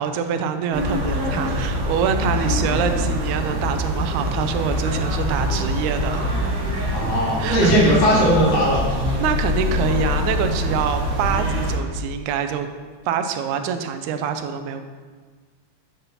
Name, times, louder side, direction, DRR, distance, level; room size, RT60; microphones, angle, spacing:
voice 1, 0.0-6.3 7.4-8.0 9.2-12.7 13.1-14.8, right 7 dB, 90° right, 8 dB, 2.0 m, -25 dB
sound 1, 0.7-11.8, left 1 dB, 60° right, 2.0 m, -24 dB
voice 2, 6.9-9.0, equal, 90° left, -8 dB, 3.9 m, -18 dB
8.8 x 5.6 x 4.1 m, 1.5 s
omnidirectional pair, 3.3 m